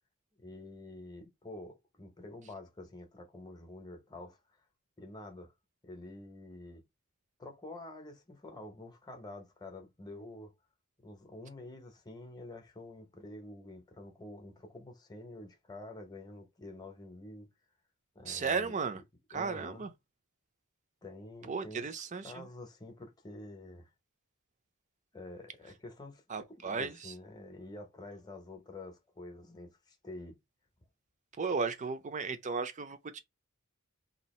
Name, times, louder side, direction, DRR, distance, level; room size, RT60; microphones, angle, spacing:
voice 1, 0.4-4.4 5.0-5.5 5.8-6.8 7.4-10.5 11.0-17.5 18.1-18.8 19.3-19.9 21.0-23.9 25.1-26.2 26.5-30.4, left 2 dB, 20° left, 0.8 m, -48 dB
voice 2, 18.3-19.0 19.3-19.9 21.5-22.5 26.3-26.9 31.4-33.2, right 5 dB, 35° right, 0.5 m, -35 dB
2.7 x 2.4 x 4.2 m
head